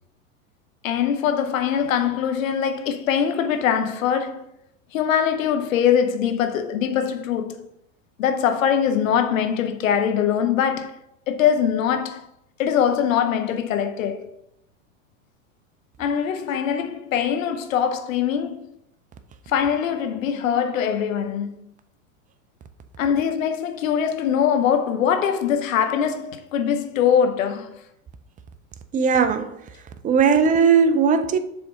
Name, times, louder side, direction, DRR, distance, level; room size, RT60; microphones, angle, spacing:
voice 1, 0.8-4.5 4.9-7.7 8.2-11.0 11.3-12.2 12.6-14.4 16.0-18.7 19.5-21.7 23.0-27.8, left 8 dB, 80° left, 0.8 m, -22 dB
voice 2, 28.9-29.6 30.0-31.4, right 6 dB, 20° right, 0.4 m, -18 dB
7.1 x 3.3 x 4.0 m
hypercardioid pair, 100°, 39 cm